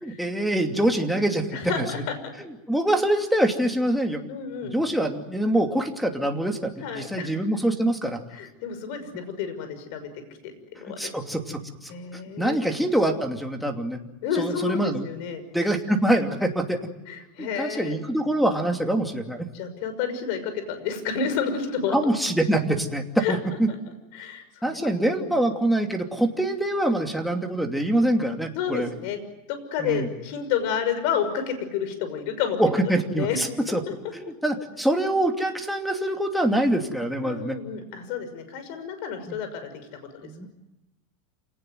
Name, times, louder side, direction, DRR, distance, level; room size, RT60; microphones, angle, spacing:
voice 1, 0.0-1.9 2.4-4.2 4.6-8.2 11.0-11.9 12.4-14.0 14.4-15.1 15.5-16.8 17.4-19.5 21.9-23.7 24.6-28.9 29.8-30.1 32.6-33.8 34.1-37.6 39.3-39.4 40.2-40.5, right 1 dB, ahead, 5 dB, 2.7 m, -25 dB
voice 2, 1.5-2.3 4.3-4.8 6.8-7.3 8.3-10.1 10.7-11.1 11.9-12.6 14.2-15.4 17.1-18.0 19.5-22.0 23.2-23.4 23.7-23.8 24.1-24.4 24.7-24.9 25.2-25.3 28.5-29.2 29.5-32.6 33.1-33.4 33.9-34.0 37.2-39.7 40.1-40.5, left 7 dB, 55° left, 9 dB, 6.0 m, -30 dB
28.0 x 18.5 x 9.5 m, 0.94 s
supercardioid pair, 150°, 0 cm